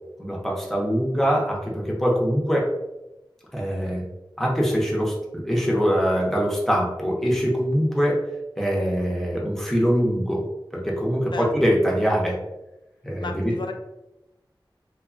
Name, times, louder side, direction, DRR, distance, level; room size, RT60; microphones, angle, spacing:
voice 1, 0.2-2.7 3.5-4.0 4.4-8.2 8.6-10.4 10.7-12.4 13.0-13.5, equal, 5° left, -3 dB, 0.6 m, -23 dB
voice 2, 13.2-13.7, left 3 dB, 60° left, 4 dB, 0.3 m, -33 dB
2.8 x 2.2 x 2.4 m, 0.95 s
wide cardioid pair, 55°, 9 cm